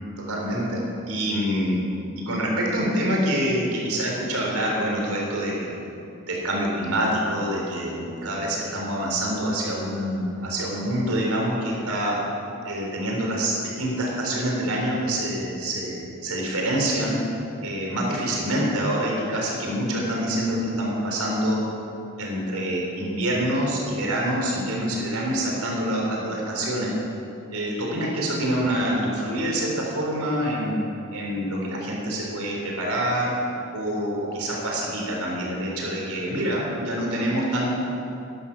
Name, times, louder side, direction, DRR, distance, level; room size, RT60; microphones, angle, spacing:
voice 1, 0.2-1.8 2.2-5.7 6.3-12.2 12.6-17.2 17.6-21.6 22.2-26.9 27.5-30.8 31.1-37.7, right 1 dB, 80° right, -2 dB, 3.8 m, -26 dB
11.5 x 11.0 x 7.0 m, 2.7 s
head